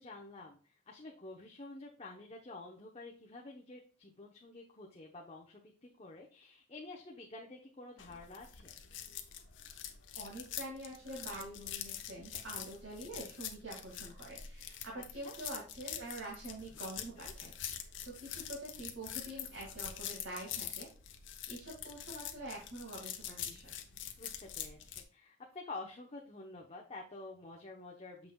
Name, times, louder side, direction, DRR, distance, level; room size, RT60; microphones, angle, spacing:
voice 1, 0.0-8.7 14.9-15.4 17.0-17.3 24.2-28.3, left 2 dB, 30° left, -1 dB, 1.0 m, -49 dB
sound 1, 8.0-25.0, left 10 dB, 70° left, 1.0 m, -45 dB
voice 2, 10.2-20.9 21.5-23.7, right 1 dB, 70° right, -4 dB, 2.2 m, -46 dB
7.5 x 5.9 x 2.3 m, 0.41 s
head